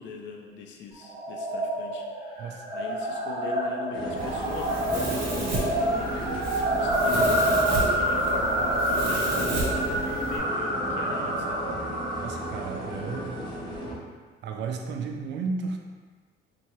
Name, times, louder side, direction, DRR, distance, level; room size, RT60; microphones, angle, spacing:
voice 1, 0.0-11.7, left 5 dB, 60° left, 2 dB, 0.5 m, -40 dB
sound 1, 1.0-13.5, right 1 dB, 20° right, 0.7 m, -28 dB
sound 2, 3.9-14.0, right 1 dB, 20° left, 0.8 m, -35 dB
Domestic sounds home sounds, 4.2-10.4, right 1 dB, 70° right, 1.0 m, -33 dB
voice 2, 12.2-13.4 14.4-15.8, right 4 dB, 55° right, 3 dB, 0.4 m, -33 dB
3.4 x 2.8 x 3.0 m, 1.4 s
cardioid pair, 150°, 21 cm